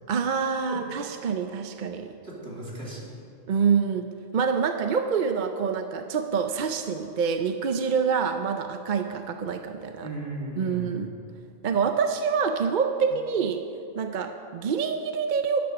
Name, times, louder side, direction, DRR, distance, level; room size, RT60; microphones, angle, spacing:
voice 1, 0.1-2.1 3.5-10.1 10.6-11.1 11.6-13.6 14.0-15.6, right 6 dB, 55° right, 6 dB, 0.7 m, -26 dB
voice 2, 2.2-3.1 10.0-11.0, right 1 dB, 70° right, -4 dB, 3.0 m, -36 dB
12.5 x 11.0 x 6.0 m, 2.6 s
omnidirectional pair, 1.1 m